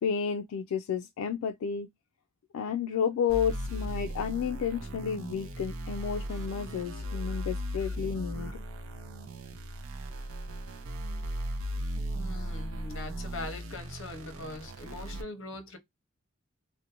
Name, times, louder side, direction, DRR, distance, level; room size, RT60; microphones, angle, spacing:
voice 1, 0.0-1.9 2.5-8.6, left 7 dB, 85° left, 0.3 m, -31 dB
sound 1, 3.3-15.2, equal, 75° right, 0.5 m, -37 dB
voice 2, 12.2-15.8, left 2 dB, 60° left, 0.7 m, -41 dB
2.5 x 2.0 x 2.8 m
head